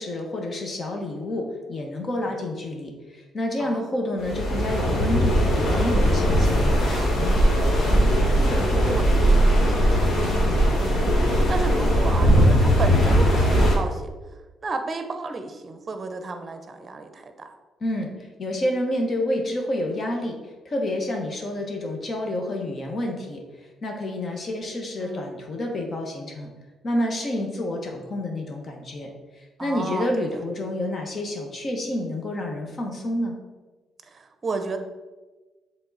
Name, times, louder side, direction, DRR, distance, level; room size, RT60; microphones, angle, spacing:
voice 1, 0.0-7.4 17.8-18.1 18.4-20.4 20.6-23.4 23.8-26.5 26.8-29.1 29.4-33.4, left 1 dB, 45° left, 2 dB, 1.3 m, -29 dB
sound 1, 4.2-13.7, equal, 65° left, 1.6 m, -19 dB
voice 2, 8.3-11.1 11.5-14.0 14.6-17.5 25.0-25.4 29.6-30.3 34.1-34.8, right 3 dB, 35° right, 7 dB, 0.7 m, -33 dB
6.7 x 3.7 x 4.0 m, 1.2 s
cardioid pair, 90°, 0 cm